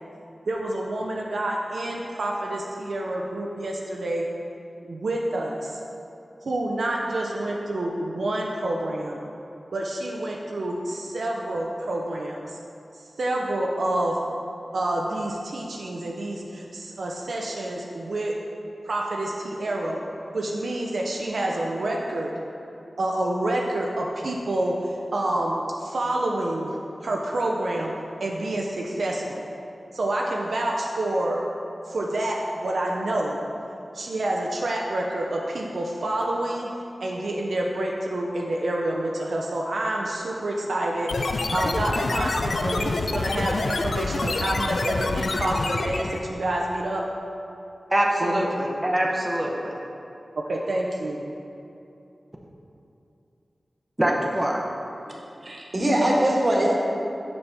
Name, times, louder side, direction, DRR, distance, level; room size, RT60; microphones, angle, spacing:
voice 1, 0.5-4.3 4.8-5.8 6.4-9.2 9.7-12.6 13.2-14.2 14.7-18.3 18.8-20.0 20.3-22.3 23.0-26.7 27.0-27.9 28.2-29.5 29.9-31.4 31.9-33.4 33.9-36.7 37.0-47.0 48.2-48.5 50.5-51.2, right 1 dB, 80° right, -2 dB, 0.5 m, -28 dB
sound 1, 41.1-46.3, left 3 dB, 85° left, 0.3 m, -27 dB
voice 2, 47.9-49.7 54.0-54.6, right 1 dB, 20° right, -2 dB, 0.7 m, -24 dB
voice 3, 55.4-56.7, right 1 dB, 45° right, -3 dB, 1.2 m, -21 dB
7.0 x 5.3 x 3.4 m, 2.7 s
cardioid pair, 50°, 0 cm